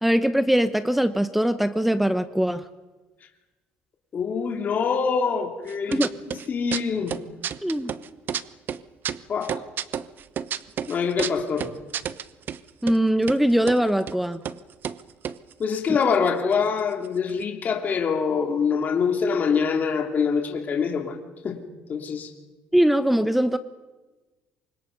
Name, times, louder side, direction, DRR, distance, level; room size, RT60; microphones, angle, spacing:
voice 1, 0.0-2.6 5.9-6.1 7.6-7.9 12.8-14.4 22.7-23.6, equal, 5° right, 12 dB, 1.0 m, -21 dB
voice 2, 4.1-6.0 6.5-7.2 9.3-9.6 10.9-11.7 15.6-21.2 21.4-21.6 21.9-22.3, left 6 dB, 40° left, 3 dB, 3.1 m, -24 dB
sound 1, 5.7-6.5 6.7-8.4 8.7-12.6 12.9-13.0 13.2-13.8 14.1-14.2 14.4-14.6 14.8-16.5 16.8-16.9 17.0-17.4, right 8 dB, 50° right, 1.0 m, -30 dB
28.5 x 25.0 x 5.4 m, 1.2 s
cardioid pair, 110°, 4 cm